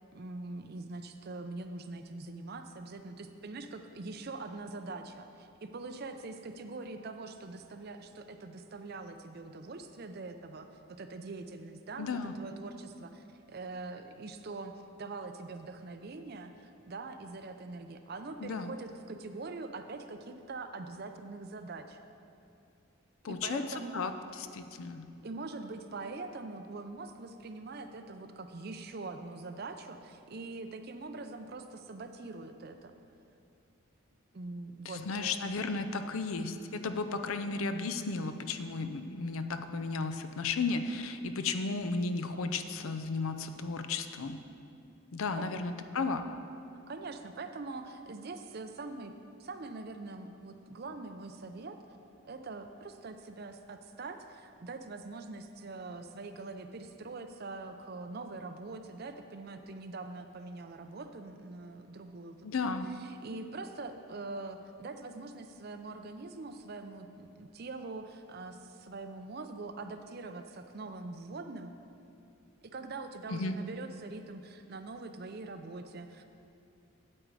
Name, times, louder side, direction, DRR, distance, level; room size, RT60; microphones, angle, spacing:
voice 1, 0.1-12.1 12.3-22.0 23.3-24.1 25.2-32.9 34.3-35.4 45.4-45.5 46.9-49.1 49.4-51.8 52.2-62.5 62.9-71.7 72.6-76.2, right 3 dB, 45° right, 8 dB, 0.5 m, -43 dB
voice 2, 12.0-12.3 18.4-18.7 23.2-25.0 34.8-44.4 45.1-46.3 62.4-62.9 73.3-73.6, left 4 dB, 70° left, 9 dB, 0.5 m, -34 dB
8.8 x 7.8 x 4.7 m, 2.6 s
head